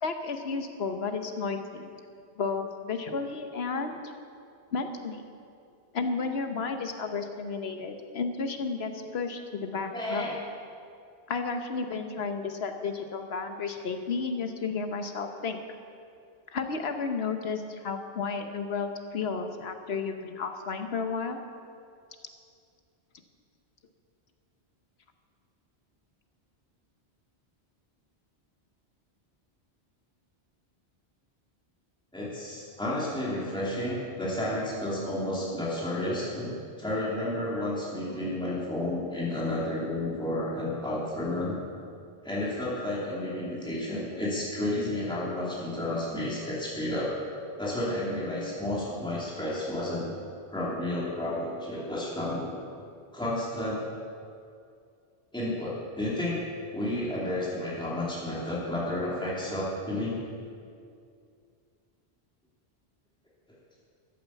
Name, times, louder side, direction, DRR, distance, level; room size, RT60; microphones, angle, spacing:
voice 1, 0.0-1.9 2.4-4.0 4.7-5.2 5.9-10.4 11.3-15.6 16.5-21.4, left 4 dB, 70° left, 6 dB, 1.2 m, -32 dB
voice 2, 9.9-10.3 32.1-41.5 42.2-47.1 47.6-50.2 50.5-52.5 53.1-53.8 55.3-56.4 56.7-60.2, left 1 dB, 5° left, -7 dB, 2.7 m, -31 dB
13.0 x 9.0 x 7.2 m, 2.4 s
omnidirectional pair, 1.1 m